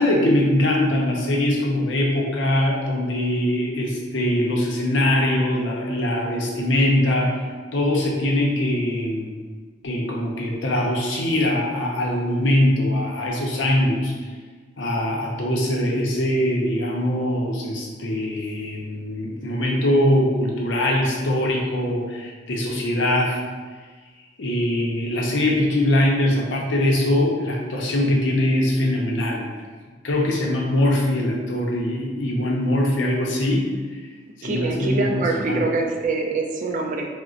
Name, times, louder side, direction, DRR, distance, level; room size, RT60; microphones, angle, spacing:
voice 1, 0.0-7.4 7.7-9.3 9.8-14.1 14.8-23.4 24.4-29.5 30.0-33.7 34.4-35.6, left 1 dB, 70° left, -2 dB, 0.6 m, -22 dB
voice 2, 34.4-37.1, right 3 dB, 45° right, 2 dB, 0.3 m, -24 dB
3.8 x 2.1 x 2.4 m, 1.4 s
head